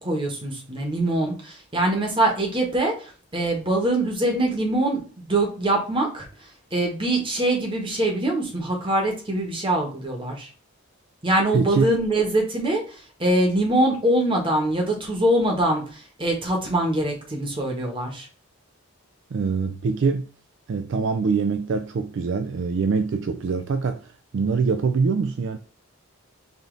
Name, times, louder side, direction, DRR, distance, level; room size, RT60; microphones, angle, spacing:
voice 1, 0.0-6.3 6.7-10.5 11.2-18.3, right 1 dB, 20° right, 1.1 m, -23 dB
voice 2, 11.5-11.9 19.3-20.3 20.7-25.6, right 4 dB, 55° right, 0.3 m, -24 dB
5.0 x 2.7 x 3.8 m
head